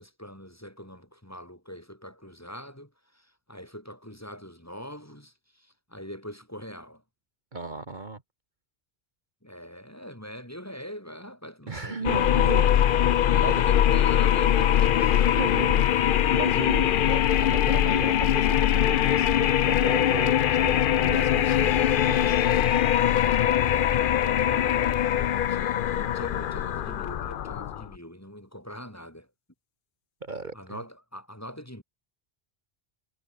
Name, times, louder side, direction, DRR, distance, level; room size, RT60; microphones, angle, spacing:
voice 1, 0.0-7.0 9.4-12.4 13.2-15.2 23.8-29.3 30.5-31.8, equal, 15° left, 5.0 m, -43 dB
voice 2, 7.5-8.2 11.7-12.7 13.0-13.6 15.4-15.8 16.2-22.5 30.2-30.8, right 3 dB, 45° right, 1.8 m, -35 dB
sound 1, 12.0-27.9, left 10 dB, 60° left, 0.7 m, -22 dB
omnidirectional pair, 1.1 m